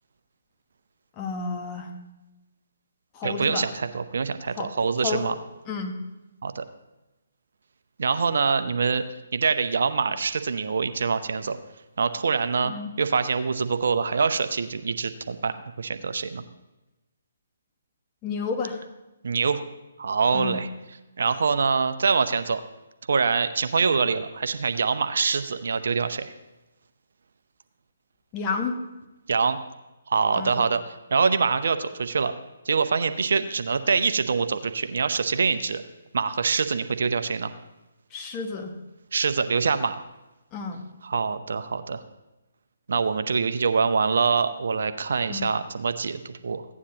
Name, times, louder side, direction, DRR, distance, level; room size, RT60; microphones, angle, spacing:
voice 1, 1.2-1.9 3.1-3.7 4.5-4.7 5.0-5.3 5.7-6.0 12.6-12.9 18.2-18.8 20.3-20.6 28.3-28.8 30.3-30.6 38.1-38.7 40.5-40.8 45.3-45.5, left 4 dB, 25° left, 3 dB, 1.3 m, -31 dB
voice 2, 3.2-5.4 6.4-6.6 8.0-9.0 9.3-11.6 12.0-12.7 13.0-16.4 19.2-19.6 20.0-20.7 21.2-22.6 23.1-26.3 29.3-29.6 30.1-30.8 31.1-32.3 32.6-35.8 36.1-37.5 39.1-40.0 41.0-42.0 42.9-46.6, right 5 dB, 65° right, 10 dB, 0.7 m, -24 dB
16.0 x 9.6 x 2.9 m, 1.0 s
figure-of-eight pair, 140°, 0 cm